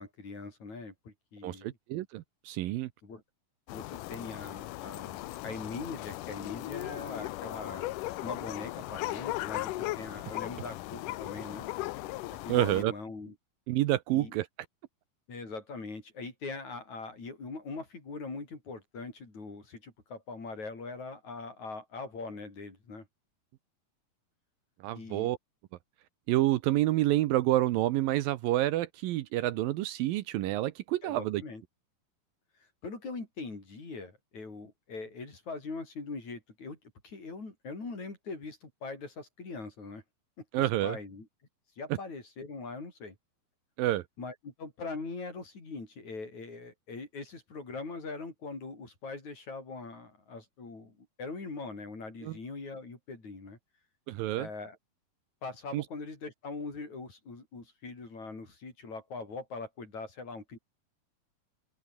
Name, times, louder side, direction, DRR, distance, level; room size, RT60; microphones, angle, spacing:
voice 1, 0.0-1.8 3.0-3.2 3.7-7.9 8.2-11.7 12.4-13.3 14.1-14.4 15.3-23.1 24.9-25.3 31.0-31.6 32.8-36.8 37.0-40.0 40.4-40.5 40.8-41.3 41.8-43.2 44.2-53.6 54.4-54.8 55.4-60.6, left 3 dB, 45° left, 7.7 m, -42 dB
voice 2, 1.4-2.9 12.5-12.9 13.7-14.5 24.8-25.4 26.3-31.4 40.5-41.0 43.8-44.0 52.2-52.4 54.1-54.5 55.7-55.8, right 15 dB, 75° right, 2.4 m, -28 dB
sound 1, 3.7-12.8, left 17 dB, 75° left, 2.0 m, -37 dB
open air
omnidirectional pair, 4.4 m